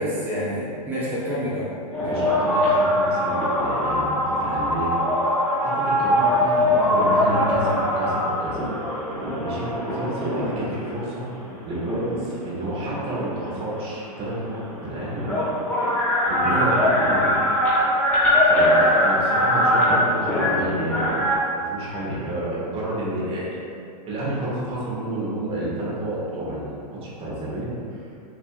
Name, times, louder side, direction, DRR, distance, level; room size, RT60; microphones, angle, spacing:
voice 1, 0.0-1.7 6.4-6.6 16.4-16.7, equal, 10° right, -11 dB, 1.0 m, -28 dB
sound 1, 1.9-10.7 11.4-13.1 14.3-14.4 14.6-21.4, left 1 dB, 5° left, 1.3 m, -21 dB
voice 2, 2.0-4.9 5.6-8.7 9.4-11.3 11.6-15.2 16.3-17.4 18.4-23.6 24.1-28.0, right 1 dB, 25° right, -6 dB, 1.2 m, -30 dB
5.9 x 3.3 x 2.5 m, 2.4 s
hypercardioid pair, 115°, 21 cm